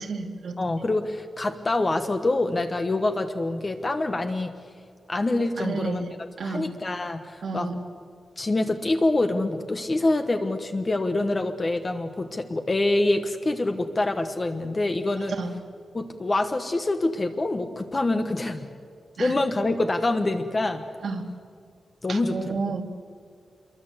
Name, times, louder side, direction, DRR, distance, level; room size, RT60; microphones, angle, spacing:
voice 1, 0.0-0.6 5.6-6.1 6.4-6.7 7.4-7.7 15.3-15.5 19.2-19.3 21.0-21.3 22.1-22.8, right 4 dB, 65° right, 4 dB, 2.3 m, -31 dB
voice 2, 0.6-4.6 5.1-6.1 6.4-7.7 8.4-15.3 15.9-18.7 19.2-20.8 22.0-22.7, left 2 dB, 25° left, 6 dB, 1.2 m, -26 dB
27.0 x 23.0 x 8.1 m, 2.2 s
wide cardioid pair, 180°, 0 cm